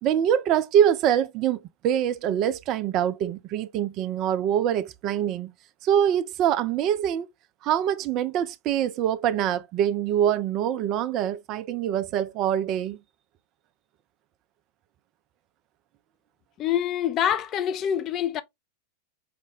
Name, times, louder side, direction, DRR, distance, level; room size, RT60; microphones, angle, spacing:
voice 1, 0.0-5.5 5.8-7.3 7.6-13.0, right 10 dB, 35° right, 0.3 m, -24 dB
voice 2, 16.6-18.4, left 10 dB, 30° left, 0.4 m, -25 dB
4.9 x 2.1 x 3.4 m
figure-of-eight pair, 90°, 0 cm